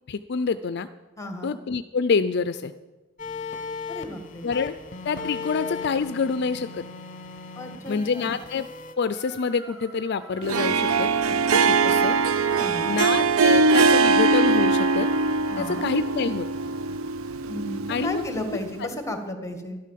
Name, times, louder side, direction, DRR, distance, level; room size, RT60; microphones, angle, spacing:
voice 1, 0.1-0.9 1.4-2.7 4.4-4.7 5.0-6.8 7.9-8.7 9.0-11.1 11.5-12.2 12.8-15.1 15.6-16.5 17.9-18.2 18.5-18.9, left 5 dB, 55° left, 13 dB, 0.5 m, -27 dB
voice 2, 1.2-1.5 3.9-4.5 7.6-8.3 12.6-13.0 15.5-15.9 17.4-19.8, left 1 dB, 15° left, 6 dB, 1.8 m, -34 dB
sound 1, 3.2-8.9, left 5 dB, 40° left, 1.2 m, -37 dB
sound 2, 9.1-15.1, right 1 dB, 35° right, 5.4 m, -45 dB
Harp, 10.4-18.7, right 4 dB, 85° right, 0.6 m, -22 dB
12.0 x 12.0 x 7.5 m, 1.2 s
head